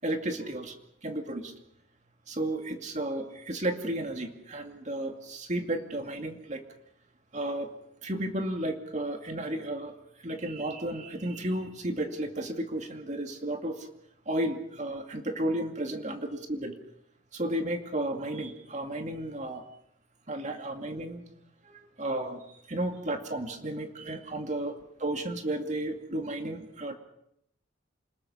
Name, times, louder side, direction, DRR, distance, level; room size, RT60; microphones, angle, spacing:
voice 1, 0.0-0.7 1.0-1.5 2.3-6.6 7.3-7.7 8.0-9.9 10.2-13.9 14.3-16.7 17.3-19.6 20.3-21.2 21.7-26.9, right 1 dB, 35° right, 4 dB, 2.4 m, -33 dB
28.5 x 20.5 x 5.7 m, 0.76 s
head